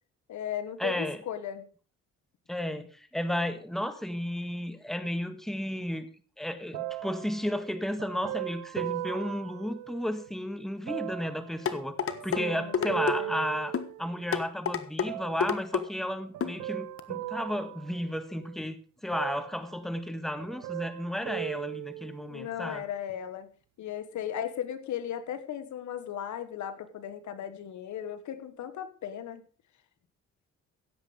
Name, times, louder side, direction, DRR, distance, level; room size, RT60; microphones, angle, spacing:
voice 1, 0.3-1.7 12.4-13.3 22.3-23.5 23.8-29.4, left 10 dB, 70° left, 11 dB, 1.5 m, -36 dB
voice 2, 0.8-1.2 2.5-6.1 6.4-13.7 14.0-18.8 19.0-22.8, equal, ahead, 10 dB, 1.6 m, -33 dB
sound 1, 6.7-10.3 10.9-14.4 15.1-15.7 16.3-18.7 19.1-20.1 20.4-22.4 23.1-23.2, right 16 dB, 85° right, 1.0 m, -39 dB
sound 2, 11.7-12.4 12.7-13.2 13.7-13.9 14.3-15.1 15.4-15.8 16.4-16.6 17.0-17.1, left 7 dB, 45° left, 1.4 m, -28 dB
16.5 x 8.0 x 5.0 m, 0.40 s
cardioid pair, 90°, 30 cm